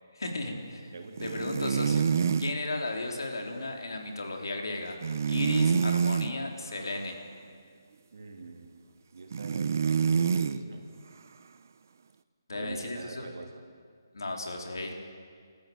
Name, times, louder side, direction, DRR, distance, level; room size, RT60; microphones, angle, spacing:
voice 1, 0.1-0.8 1.2-2.1 2.4-5.0 5.3-7.2 12.5-13.3 14.1-14.9, left 2 dB, 85° left, 2 dB, 3.7 m, -34 dB
voice 2, 0.9-1.4 8.1-8.7 9.1-10.9 12.5-13.5, right 3 dB, 60° right, 3 dB, 3.0 m, -44 dB
sound 1, 1.2-2.6 5.0-6.3 9.3-10.6, right 6 dB, 40° right, 0.6 m, -26 dB
29.5 x 14.0 x 7.9 m, 2.1 s
hypercardioid pair, 170°, 2 cm